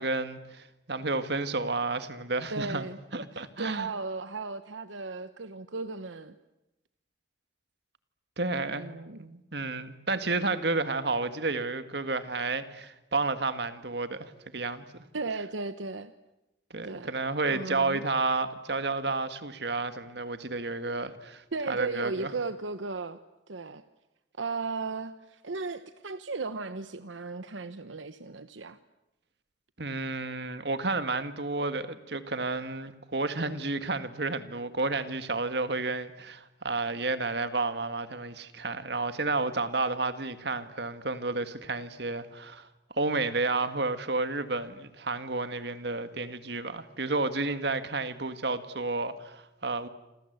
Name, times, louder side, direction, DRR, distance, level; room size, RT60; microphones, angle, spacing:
voice 1, 0.0-2.8 3.1-3.9 8.4-8.9 9.2-14.9 16.7-22.3 29.8-42.7 43.0-49.9, right 3 dB, 60° right, 1.9 m, -31 dB
voice 2, 2.5-3.0 3.3-6.3 8.7-9.2 15.1-16.1 16.8-17.1 17.4-18.0 21.5-23.2 23.5-23.8 24.4-28.8, right 3 dB, 85° right, 1.0 m, -36 dB
27.5 x 26.5 x 8.1 m
head